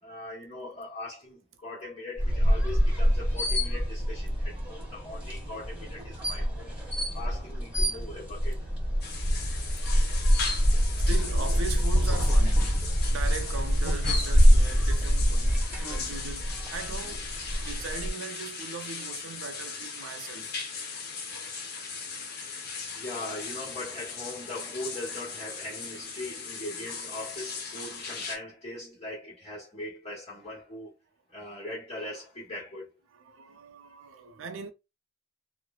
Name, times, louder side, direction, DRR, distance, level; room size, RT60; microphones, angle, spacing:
voice 1, 0.0-6.7 7.1-8.6 10.6-11.1 12.9-13.1 21.1-21.2 22.2-30.9 31.3-32.9, left 1 dB, 30° left, 1.1 m, -40 dB
sound 1, 2.2-18.1, equal, 10° right, 1.3 m, -25 dB
sound 2, 9.0-28.4, left 5 dB, 50° left, 0.7 m, -38 dB
voice 2, 9.6-12.8 13.1-17.3 17.6-20.6 33.1-34.7, right 4 dB, 70° right, 0.5 m, -40 dB
3.0 x 2.0 x 2.3 m
head